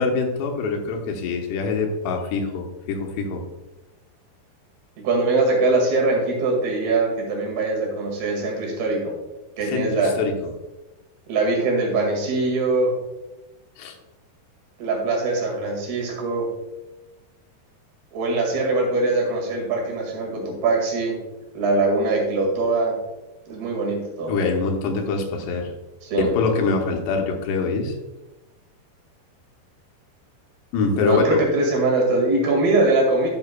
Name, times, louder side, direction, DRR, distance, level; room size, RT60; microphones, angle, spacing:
voice 1, 0.0-3.4 9.7-10.3 13.8-13.9 24.3-25.7 26.2-27.9 30.7-31.4, left 4 dB, 90° left, 2 dB, 3.2 m, -24 dB
voice 2, 5.0-9.2 9.6-10.2 11.3-13.0 14.8-16.5 18.1-21.2 21.5-23.0 23.5-24.3 26.0-26.3 31.0-33.3, right 2 dB, 70° right, -1 dB, 3.9 m, -22 dB
11.0 x 7.6 x 2.3 m, 1.1 s
omnidirectional pair, 4.7 m